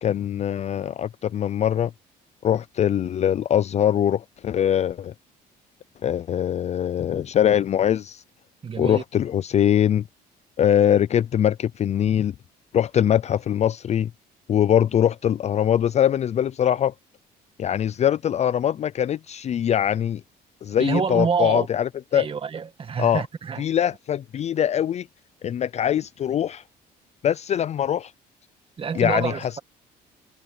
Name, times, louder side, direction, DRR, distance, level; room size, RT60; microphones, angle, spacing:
voice 1, 0.0-1.9 2.4-5.1 6.0-8.2 8.8-10.0 10.6-12.3 12.7-14.1 14.5-16.9 17.6-20.2 20.6-22.3 23.0-23.2 23.6-25.1 25.4-26.6 27.2-28.1 28.9-29.6, left 10 dB, 40° left, 0.5 m, -22 dB
voice 2, 8.6-9.0 20.8-21.7 22.1-23.6 28.8-29.6, right 6 dB, 35° right, 1.7 m, -27 dB
cardioid pair, 110°, 17 cm